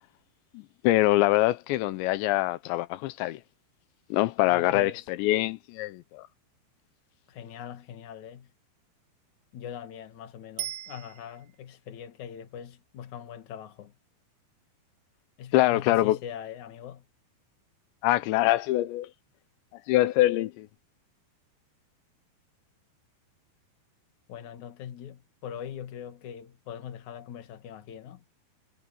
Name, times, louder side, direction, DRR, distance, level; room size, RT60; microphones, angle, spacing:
voice 1, 0.5-3.4 4.1-4.9 5.2-6.3 15.5-16.2 18.0-19.1 19.9-20.7, left 16 dB, 90° left, 3.1 m, -24 dB
voice 2, 4.4-5.1 7.3-8.5 9.5-13.9 15.4-17.0 24.3-28.2, left 9 dB, 50° left, 2.8 m, -41 dB
Bicycle bell, 10.6-11.7 20.8-20.9, right 14 dB, 80° right, 2.5 m, -39 dB
omnidirectional pair, 5.1 m